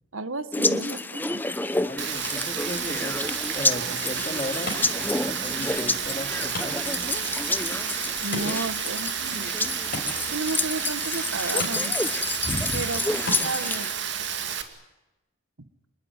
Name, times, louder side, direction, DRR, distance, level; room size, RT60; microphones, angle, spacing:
voice 1, 0.1-1.4 8.2-9.6 10.3-12.0 12.7-13.9, right 3 dB, 75° right, 13 dB, 1.5 m, -33 dB
sound 1, 0.5-13.9, left 2 dB, 10° left, 0.9 m, -29 dB
voice 2, 1.7-7.3 12.4-12.8, left 1 dB, 25° left, 5 dB, 2.7 m, -35 dB
Rain, 2.0-14.6, right 8 dB, 55° right, 2.5 m, -31 dB
Wood, 3.8-13.8, left 2 dB, 45° left, 6.2 m, -40 dB
26.5 x 20.5 x 9.7 m, 0.99 s
head